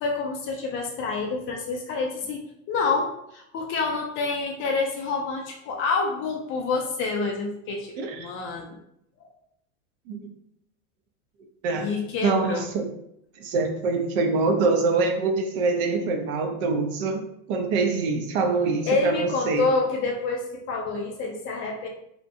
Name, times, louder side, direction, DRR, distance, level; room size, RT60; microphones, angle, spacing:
voice 1, 0.0-8.8 11.7-12.7 18.9-21.9, left 4 dB, 30° left, 1 dB, 0.4 m, -28 dB
voice 2, 8.0-8.3 10.1-10.2 11.6-11.9 12.2-12.9 13.4-17.2 17.5-19.7, right 3 dB, 55° right, 4 dB, 0.6 m, -24 dB
2.8 x 2.2 x 2.6 m, 0.74 s
hypercardioid pair, 105°, 41 cm